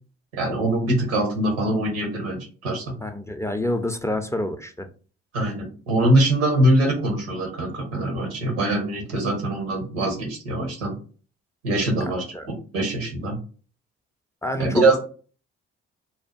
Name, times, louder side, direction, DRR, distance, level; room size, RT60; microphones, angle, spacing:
voice 1, 0.3-2.8 5.3-11.0 11.6-13.4 14.6-15.0, right 1 dB, 90° right, 1 dB, 0.9 m, -23 dB
voice 2, 3.0-4.9 12.3-12.5 14.4-14.8, left 1 dB, 10° left, 6 dB, 0.4 m, -27 dB
2.7 x 2.2 x 2.4 m, 0.39 s
hypercardioid pair, 50°, 30 cm